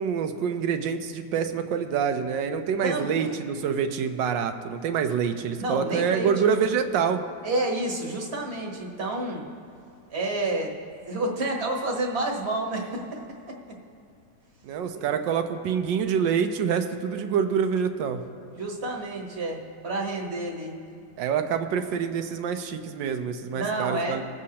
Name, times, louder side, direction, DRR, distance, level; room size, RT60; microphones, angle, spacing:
voice 1, 0.0-7.2 14.6-18.2 21.2-24.2, right 7 dB, 85° right, 8 dB, 1.4 m, -26 dB
voice 2, 2.8-3.3 5.6-6.3 7.4-9.4 10.1-10.7 11.1-13.2 13.5-13.7 14.8-15.0 18.6-20.7 23.5-24.2, right 2 dB, 40° right, -1 dB, 1.4 m, -29 dB
20.0 x 7.3 x 2.8 m, 2.7 s
omnidirectional pair, 1.9 m